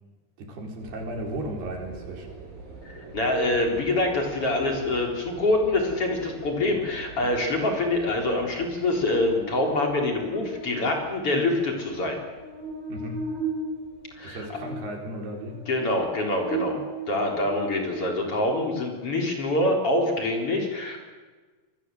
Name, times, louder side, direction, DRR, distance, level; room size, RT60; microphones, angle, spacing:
voice 1, 0.4-2.3 12.9-13.3 14.2-15.7 17.4-17.6, right 1 dB, 80° right, 2 dB, 6.2 m, -35 dB
sound 1, 0.8-14.7, right 3 dB, 65° right, 5.9 m, -45 dB
voice 2, 2.8-12.2 14.2-14.4 15.7-16.8 17.1-21.0, left 2 dB, 35° left, 1 dB, 4.6 m, -25 dB
Buzz, 9.0-18.5, right 3 dB, 20° right, 7.7 m, -37 dB
27.0 x 21.5 x 7.9 m, 1.3 s
omnidirectional pair, 4.5 m